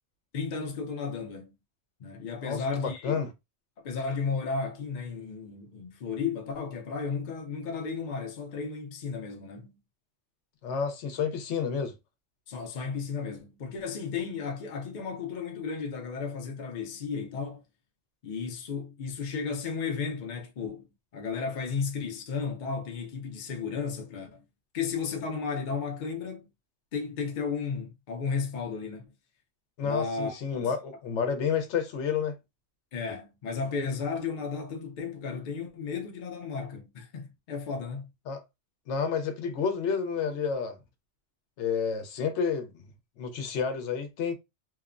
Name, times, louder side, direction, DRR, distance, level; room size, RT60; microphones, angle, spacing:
voice 1, 0.3-1.5 2.0-3.2 3.8-9.8 12.5-17.6 18.2-24.4 24.7-26.5 26.9-29.0 29.8-30.7 32.9-38.1, left 5 dB, 50° left, 0.6 m, -34 dB
voice 2, 2.4-3.3 10.6-11.9 29.8-32.3 38.3-38.4 38.9-40.8 41.6-42.8 43.2-44.4, left 6 dB, 80° left, 0.9 m, -30 dB
2.8 x 2.0 x 2.4 m
omnidirectional pair, 1.2 m